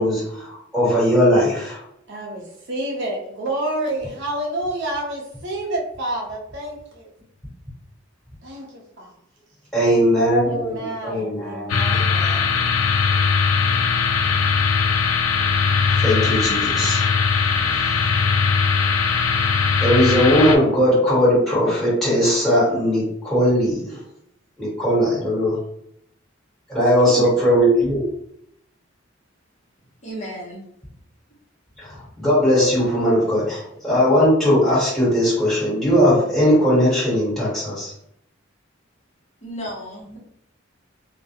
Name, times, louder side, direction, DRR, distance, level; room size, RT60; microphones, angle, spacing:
voice 1, 0.0-1.8 9.7-12.4 15.9-17.1 19.8-24.0 24.6-25.6 26.7-28.0 31.8-37.9, equal, ahead, -8 dB, 1.3 m, -19 dB
voice 2, 2.1-7.1 8.4-9.1 10.5-12.4, right 1 dB, 60° right, -2 dB, 0.6 m, -29 dB
sound 1, 11.7-20.6, left 5 dB, 90° left, 0.4 m, -20 dB
voice 3, 30.0-30.6 39.4-40.2, equal, 35° left, -5 dB, 0.8 m, -33 dB
2.2 x 2.1 x 2.8 m, 0.75 s
head